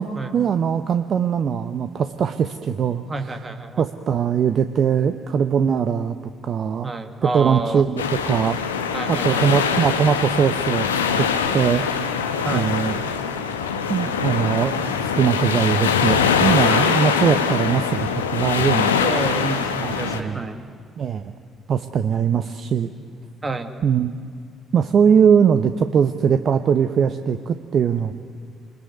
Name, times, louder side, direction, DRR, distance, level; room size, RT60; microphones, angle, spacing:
voice 1, 0.0-3.0 3.8-6.2 6.4-8.6 9.1-10.9 11.1-11.3 11.5-11.8 12.5-12.9 13.9-19.0 19.8-20.4 21.0-21.3 21.7-22.9 23.8-24.1 24.7-28.1, right 7 dB, 50° right, 10 dB, 1.1 m, -21 dB
voice 2, 3.1-3.8 6.8-7.8 8.9-9.5 12.4-12.8 16.7-16.9 19.0-20.6 23.4-23.7, right 3 dB, 25° right, 8 dB, 2.4 m, -29 dB
sound 1, 8.0-20.2, left 6 dB, 85° left, 1.3 m, -23 dB
28.0 x 21.0 x 9.5 m, 2.2 s
figure-of-eight pair, 45°, 0 cm